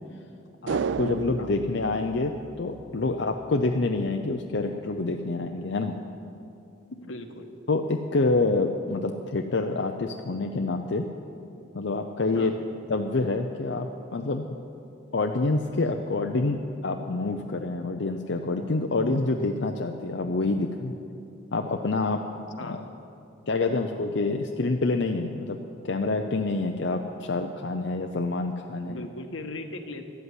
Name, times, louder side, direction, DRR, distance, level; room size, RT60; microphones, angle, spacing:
voice 1, 0.6-5.9 7.7-11.0 11.7-12.5 12.9-14.5 15.1-20.9 21.5-22.2 22.6-22.8 23.5-25.6 25.8-29.1, left 3 dB, 65° left, 4 dB, 0.6 m, -27 dB
sound 1, 0.7-3.1 3.4-3.5, right 6 dB, 70° right, 0.3 m, -32 dB
voice 2, 6.9-7.5 12.3-12.7 22.6-23.0 28.8-30.1, left 2 dB, 85° left, 5 dB, 1.2 m, -38 dB
13.0 x 8.1 x 9.7 m, 2.7 s
head